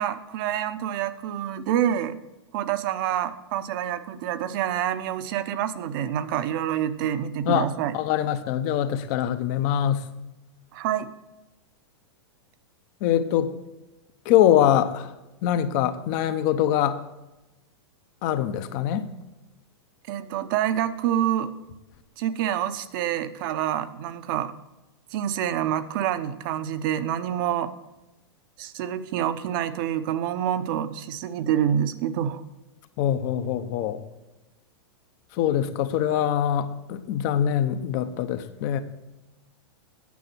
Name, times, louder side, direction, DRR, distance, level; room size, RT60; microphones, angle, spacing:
voice 1, 0.0-2.2 2.5-7.9 10.7-11.1 20.1-21.5 22.2-24.5 25.1-27.7 28.6-32.4, right 10 dB, 50° right, 12 dB, 0.8 m, -27 dB
voice 2, 7.9-10.1 13.0-13.6 14.2-15.1 15.4-17.0 18.2-19.1 33.0-34.0 35.3-38.8, left 10 dB, 45° left, 10 dB, 0.9 m, -23 dB
9.4 x 6.9 x 6.2 m, 1.0 s
hypercardioid pair, 140°, 14 cm